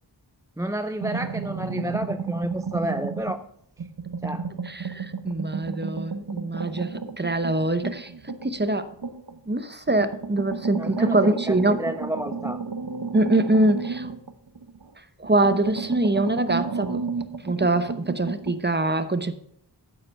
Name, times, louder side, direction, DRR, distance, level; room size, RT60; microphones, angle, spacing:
voice 1, 0.6-3.4 4.2-4.5 10.8-12.6, right 1 dB, 10° right, 0.4 m, -30 dB
sound 1, 1.0-3.5 3.8-9.4 9.9-14.9 15.2-18.6, right 5 dB, 65° right, 0.8 m, -32 dB
voice 2, 4.6-8.9 9.5-11.8 13.1-14.1 15.2-17.0 17.4-19.4, right 2 dB, 25° right, 0.8 m, -24 dB
9.3 x 7.8 x 5.7 m
wide cardioid pair, 40°, 42 cm